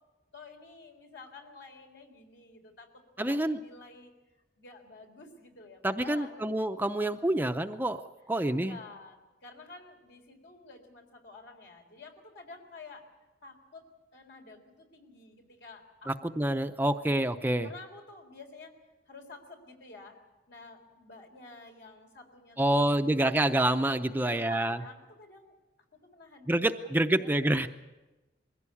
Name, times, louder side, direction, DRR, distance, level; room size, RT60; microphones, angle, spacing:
voice 1, 0.3-4.1 4.6-6.5 6.9-7.1 8.5-13.0 13.4-13.8 14.1-16.1 16.8-17.2 17.6-18.7 19.1-20.2 20.5-23.2 24.1-25.5 26.0-27.3, left 3 dB, 70° left, 3 dB, 3.9 m, -50 dB
voice 2, 3.2-3.6 5.8-8.0 8.3-8.8 16.1-17.7 22.6-24.8 26.5-27.7, right 1 dB, 10° right, 7 dB, 0.6 m, -27 dB
22.0 x 16.0 x 8.5 m, 1.1 s
head